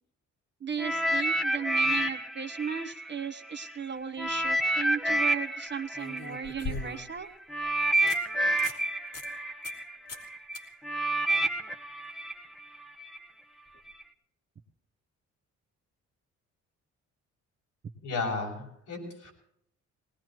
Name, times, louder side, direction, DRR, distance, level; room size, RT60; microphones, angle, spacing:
voice 1, 0.6-7.3, right 7 dB, 35° right, 7 dB, 1.2 m, -36 dB
sound 1, 0.8-3.7 4.2-13.2 13.9-14.0, right 1 dB, ahead, 1.2 m, -29 dB
sound 2, 4.2-4.5 5.9-7.2 7.6-7.7 8.1-8.2 8.5-8.8 9.1-9.3 9.6-9.8 10.1-10.3 10.5-10.6 13.7-13.8, left 3 dB, 55° left, 3.0 m, -39 dB
voice 2, 18.0-19.3, left 3 dB, 80° left, -1 dB, 7.5 m, -34 dB
20.5 x 19.5 x 3.1 m, 0.72 s
cardioid pair, 90°, 30 cm